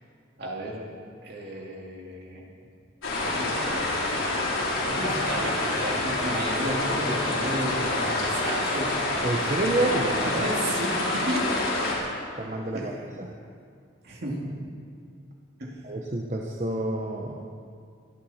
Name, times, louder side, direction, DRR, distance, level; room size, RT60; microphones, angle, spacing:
voice 1, 0.4-0.9 1.2-2.4 3.2-3.9 4.8-8.9 9.4-9.6 10.4-11.7 12.7-12.9 14.0-14.5 15.6-15.8, right 1 dB, 50° right, -2 dB, 2.6 m, -33 dB
sound 1, 3.0-11.9, left 2 dB, 85° left, 4.7 m, -27 dB
voice 2, 9.2-10.4 12.4-13.3 15.8-17.4, right 2 dB, 35° right, 0 dB, 0.9 m, -29 dB
24.0 x 11.0 x 4.3 m, 2.3 s
head